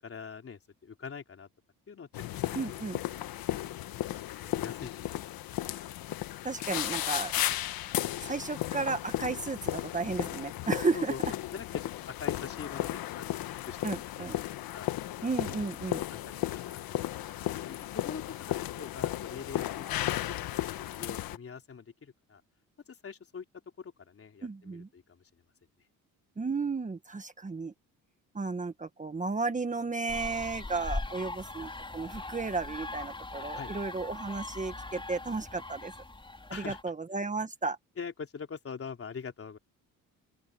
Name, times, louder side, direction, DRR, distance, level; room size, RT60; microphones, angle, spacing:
voice 1, 0.0-1.5 1.9-3.3 4.1-5.4 10.9-11.2 11.5-14.4 14.7-14.9 16.1-22.4 22.9-23.5 23.8-25.3 33.5-33.7 36.5-36.8 38.0-39.6, left 6 dB, 40° left, 4.1 m, -44 dB
sound 1, 2.1-21.4, left 14 dB, 80° left, 1.4 m, -35 dB
voice 2, 2.5-3.0 6.4-7.3 8.2-11.1 13.8-14.4 15.2-16.0 24.4-24.9 26.4-27.7 28.3-35.9 36.5-37.8, right 4 dB, 20° right, 1.5 m, -33 dB
sound 2, 30.1-36.8, left 2 dB, 15° left, 4.6 m, -40 dB
open air
cardioid pair, 100°, 35 cm